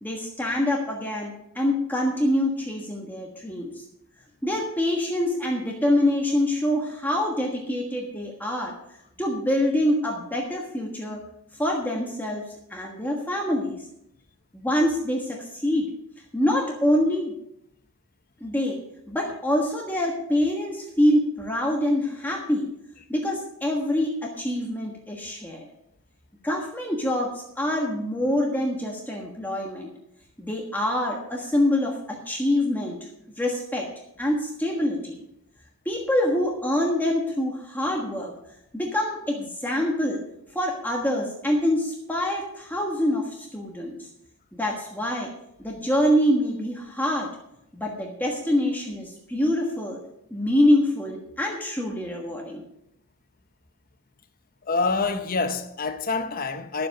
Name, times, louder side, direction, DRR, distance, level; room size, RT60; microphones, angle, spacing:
voice 1, 0.0-3.8 4.4-8.7 9.2-11.2 11.6-12.4 12.7-13.8 14.5-15.9 16.3-17.3 18.4-18.8 19.1-22.7 23.1-25.6 26.4-29.9 30.4-33.1 33.4-33.9 34.2-35.2 35.8-38.3 38.7-40.2 40.5-44.1 44.5-45.3 45.6-47.3 47.7-50.0 50.3-52.6, left 1 dB, 10° left, 1.4 m, -25 dB
voice 2, 54.6-56.9, left 4 dB, 40° left, 0.8 m, -26 dB
12.0 x 7.6 x 6.5 m
head